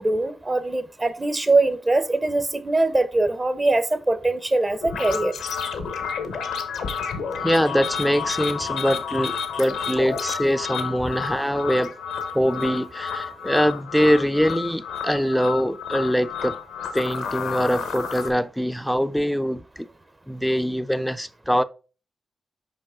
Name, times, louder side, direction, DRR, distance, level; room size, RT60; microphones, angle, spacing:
voice 1, 0.0-5.3, right 2 dB, 30° right, 0.9 m, -22 dB
sound 1, 4.8-18.3, left 6 dB, 85° left, 1.0 m, -30 dB
voice 2, 7.4-11.9 12.3-16.6 16.9-19.9 20.3-21.6, equal, ahead, 0.5 m, -23 dB
5.4 x 5.3 x 3.7 m
supercardioid pair, 45°, 0 cm